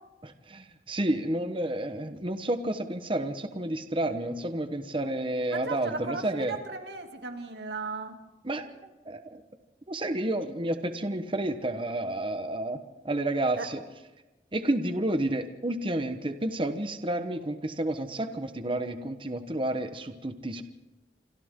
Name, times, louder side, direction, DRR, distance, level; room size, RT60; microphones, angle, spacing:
voice 1, 0.2-6.6 8.4-9.4 9.9-12.8 13.0-13.8 14.5-20.6, right 1 dB, 30° right, 9 dB, 1.2 m, -30 dB
voice 2, 5.5-8.2 13.6-13.7, right 3 dB, 70° right, 4 dB, 2.8 m, -36 dB
27.0 x 25.5 x 3.8 m, 1.1 s
head